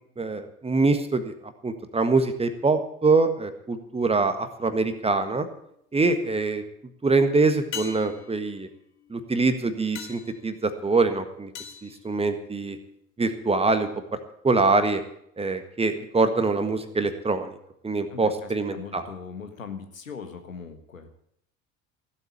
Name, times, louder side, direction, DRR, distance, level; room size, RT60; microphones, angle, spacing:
voice 1, 0.2-1.3 1.6-5.5 5.9-6.6 7.0-8.7 9.1-11.5 11.8-12.8 13.2-13.9 14.4-15.0 15.4-17.6 17.8-19.0, right 3 dB, 15° right, 9 dB, 1.5 m, -24 dB
sound 1, 5.4-6.0 7.7-12.9 17.3-17.4, left 7 dB, 40° left, 2.4 m, -43 dB
voice 2, 18.1-21.1, left 6 dB, 80° left, 6 dB, 1.6 m, -40 dB
15.5 x 8.1 x 8.4 m, 0.72 s
figure-of-eight pair, 65°, 39 cm